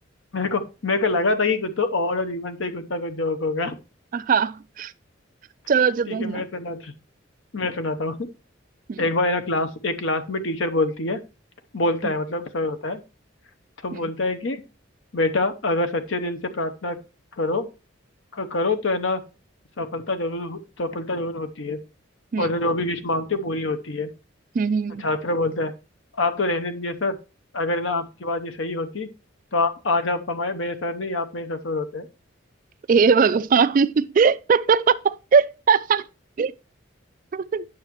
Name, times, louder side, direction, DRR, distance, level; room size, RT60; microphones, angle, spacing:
voice 1, 0.3-3.8 6.1-6.9 7.5-8.3 9.0-11.2 11.7-13.0 13.8-14.6 15.1-17.0 17.4-17.7 18.3-19.2 19.8-21.8 22.4-24.1 25.0-25.7 26.2-27.2 27.5-29.1 29.5-32.1, left 2 dB, 70° left, 0.8 m, -25 dB
voice 2, 4.1-4.9 5.7-6.4 8.9-9.0 12.0-12.1 13.9-14.1 22.3-22.5 24.5-25.0 32.9-36.1 36.4-36.5 37.3-37.7, right 5 dB, 40° right, 0.3 m, -20 dB
9.4 x 6.3 x 3.0 m
head